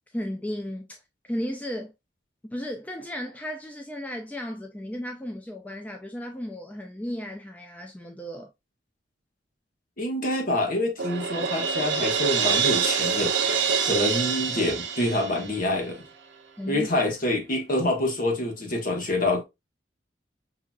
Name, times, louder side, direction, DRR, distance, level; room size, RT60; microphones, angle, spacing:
voice 1, 0.1-1.0 1.3-1.9 2.4-8.5 16.6-16.9, equal, 10° left, 0.4 m, -34 dB
voice 2, 10.0-16.0 16.7-19.4, left 1 dB, 45° left, 1.2 m, -26 dB
Crash cymbal, 11.0-15.9, right 6 dB, 70° right, 0.7 m, -26 dB
5.7 x 2.8 x 2.3 m
head